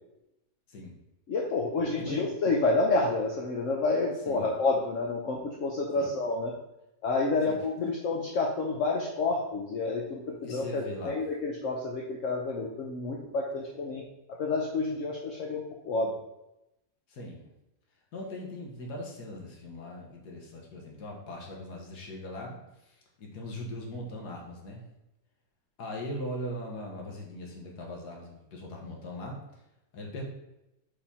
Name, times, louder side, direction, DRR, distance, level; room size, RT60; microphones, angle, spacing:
voice 1, 1.3-6.5 7.0-14.0 14.4-16.1, left 3 dB, 60° left, -1 dB, 1.0 m, -29 dB
voice 2, 7.5-7.9 10.4-11.2 17.1-17.5 18.1-22.6 22.9-24.8 25.8-29.4 29.9-30.2, left 1 dB, 85° left, -1 dB, 1.9 m, -40 dB
5.5 x 4.9 x 4.2 m, 0.91 s
omnidirectional pair, 1.7 m